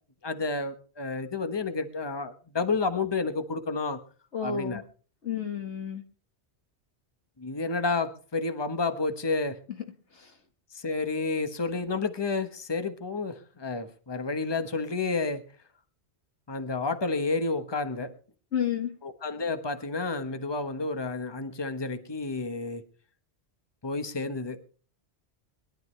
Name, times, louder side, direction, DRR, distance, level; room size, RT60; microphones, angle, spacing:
voice 1, 0.2-4.0 4.4-4.8 7.4-9.6 10.7-15.4 16.5-18.1 19.0-22.8 23.8-24.6, left 3 dB, 25° left, 9 dB, 1.2 m, -30 dB
voice 2, 4.3-4.8 5.2-6.0 10.2-10.3 18.5-18.9, left 7 dB, 90° left, 5 dB, 2.1 m, -30 dB
22.0 x 12.0 x 3.3 m, 0.39 s
omnidirectional pair, 1.1 m